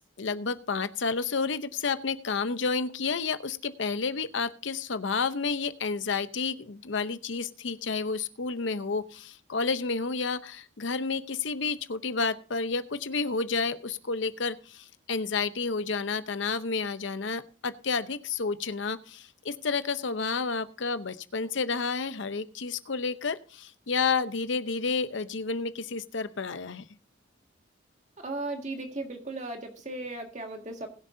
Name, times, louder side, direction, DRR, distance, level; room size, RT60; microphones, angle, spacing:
voice 1, 0.2-26.8, left 4 dB, 75° left, 12 dB, 0.7 m, -30 dB
voice 2, 28.2-30.9, right 2 dB, 35° right, 3 dB, 1.9 m, -36 dB
20.5 x 7.4 x 2.7 m, 0.38 s
head